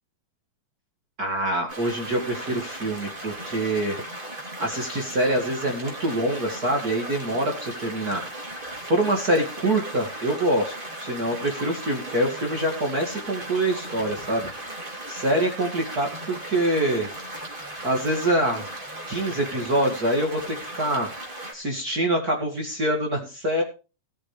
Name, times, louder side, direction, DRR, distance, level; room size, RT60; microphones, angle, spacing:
voice 1, 1.2-4.0 4.6-8.2 8.9-14.5 15.1-17.1 17.8-18.7 19.1-21.1 21.5-23.6, right 1 dB, 30° right, 2 dB, 2.4 m, -25 dB
sound 1, 1.7-21.5, right 1 dB, 15° right, 3.1 m, -37 dB
18.5 x 8.9 x 3.4 m, 0.33 s
omnidirectional pair, 3.6 m